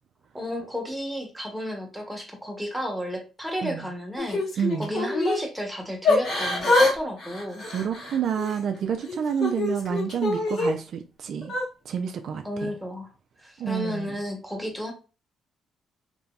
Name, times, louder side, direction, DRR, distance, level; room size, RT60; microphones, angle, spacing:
voice 1, 0.3-4.4 4.8-7.7 12.4-13.1 13.4-14.9, equal, ahead, 1.0 m, -32 dB
Yell / Crying sobbing, 4.2-5.4 6.0-6.9 7.2-8.6 9.1-10.7 11.4-11.6, left 2 dB, 65° left, 1.5 m, -25 dB
voice 2, 4.6-4.9 7.6-11.5 11.9-12.7 13.6-14.2, right 8 dB, 65° right, 0.3 m, -29 dB
2.9 x 2.7 x 2.2 m
cardioid pair, 90°, 0 cm